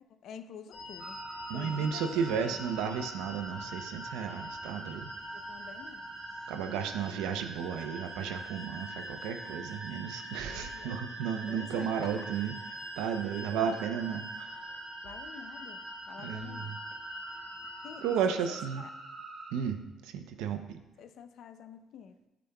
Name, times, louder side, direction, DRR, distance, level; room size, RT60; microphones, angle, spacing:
voice 1, 0.2-1.2 1.5-2.6 5.3-6.0 10.4-11.0 11.5-12.3 13.5-13.9 15.0-15.8 16.1-16.8 17.8-18.9 21.0-22.2, left 7 dB, 65° left, 9 dB, 0.6 m, -48 dB
sound 1, 0.7-18.2, left 2 dB, 50° left, 1.8 m, -47 dB
sound 2, 1.0-19.5, right 3 dB, 45° right, 1.4 m, -45 dB
voice 2, 1.5-5.1 6.5-12.5 13.0-14.5 16.2-16.8 18.0-18.8 19.5-20.8, right 7 dB, 85° right, 8 dB, 0.7 m, -33 dB
14.0 x 5.0 x 2.3 m, 0.98 s
cardioid pair, 85°, 0 cm